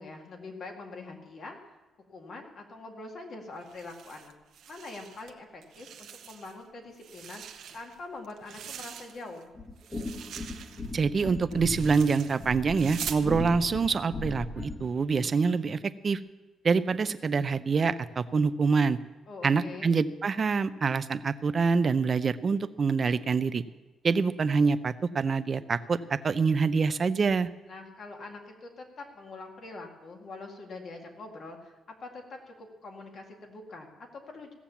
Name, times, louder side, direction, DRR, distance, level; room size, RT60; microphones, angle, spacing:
voice 1, 0.0-1.6 2.1-4.3 4.7-9.5 19.3-19.9 27.7-34.5, left 3 dB, 55° left, 2 dB, 2.1 m, -44 dB
sound 1, 3.6-5.3 5.6-6.6 6.9-9.4 9.8-13.3, right 8 dB, 75° right, 0.9 m, -43 dB
sound 2, 9.5-14.9, left 2 dB, 30° left, 1.7 m, -38 dB
voice 2, 10.9-15.8 16.0-16.2 16.6-19.0 19.4-23.6 24.0-26.0 26.2-27.5, right 5 dB, 40° right, 13 dB, 0.5 m, -26 dB
16.0 x 7.4 x 7.1 m, 1.2 s
cardioid pair, 110°, 0 cm